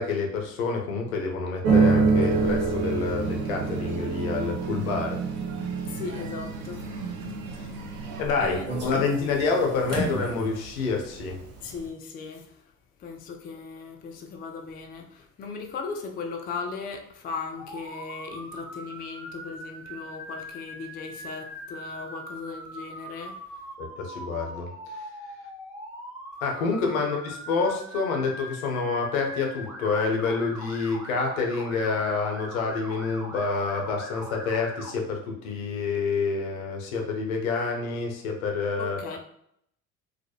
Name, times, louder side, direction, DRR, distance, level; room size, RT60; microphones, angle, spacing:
voice 1, 0.0-5.2 8.2-11.4 23.8-24.7 26.4-39.2, left 4 dB, 75° left, 0.6 m, -28 dB
sound 1, 1.6-10.9 11.2-11.8, right 4 dB, 40° right, 0.8 m, -27 dB
sound 2, 2.2-8.2, right 4 dB, 60° right, 0.6 m, -37 dB
voice 2, 5.8-7.0 8.4-8.9 11.6-12.6 13.0-23.4 38.8-39.2, left 5 dB, 25° left, 0.3 m, -37 dB
Motor vehicle (road) / Siren, 17.6-34.9, equal, 5° right, 0.7 m, -41 dB
2.3 x 2.1 x 2.7 m
figure-of-eight pair, 55°, 41 cm